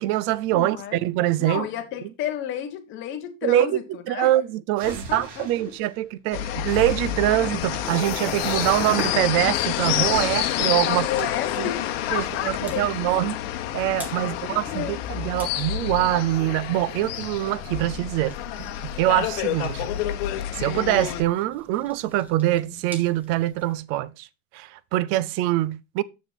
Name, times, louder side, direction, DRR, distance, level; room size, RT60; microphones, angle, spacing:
voice 1, 0.0-1.7 3.4-3.8 4.1-11.3 11.6-11.7 12.1-13.4 13.7-19.9 20.5-24.3 24.5-26.0, right 15 dB, 35° right, 0.4 m, -24 dB
voice 2, 0.5-1.0 1.4-4.3 4.8-5.5 10.8-13.1 14.1-15.2, left 11 dB, 35° left, 1.3 m, -32 dB
sound 1, 4.8-6.2 6.5-7.8 8.4-9.6 10.0-10.4, right 1 dB, 80° right, 4.3 m, -41 dB
sound 2, 6.3-21.2, left 12 dB, 55° left, 1.2 m, -28 dB
sound 3, 7.5-23.7, left 1 dB, 5° right, 2.0 m, -43 dB
7.3 x 6.7 x 4.3 m
supercardioid pair, 155°, 35 cm